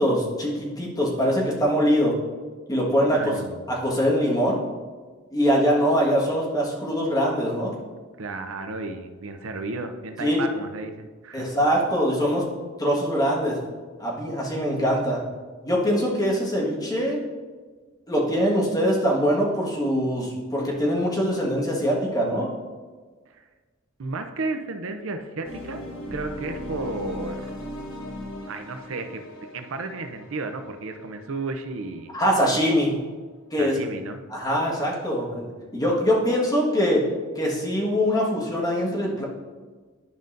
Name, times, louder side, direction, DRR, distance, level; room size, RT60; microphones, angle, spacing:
voice 1, 0.0-2.1 2.7-3.3 3.7-4.6 5.3-7.7 10.2-10.4 11.3-12.4 12.8-13.6 14.0-15.2 15.6-17.2 18.1-22.5 32.1-32.9 33.5-33.8 34.3-35.4 35.7-37.0 37.3-39.2, equal, 20° left, -4 dB, 1.5 m, -23 dB
voice 2, 3.1-3.6 8.2-11.5 23.3-23.5 24.0-25.8 26.1-27.6 28.5-29.2 29.5-32.1 33.6-34.2, right 3 dB, 75° right, 6 dB, 0.6 m, -33 dB
sound 1, 25.4-32.3, left 1 dB, 85° left, 1.1 m, -38 dB
11.0 x 5.3 x 2.6 m, 1.4 s
head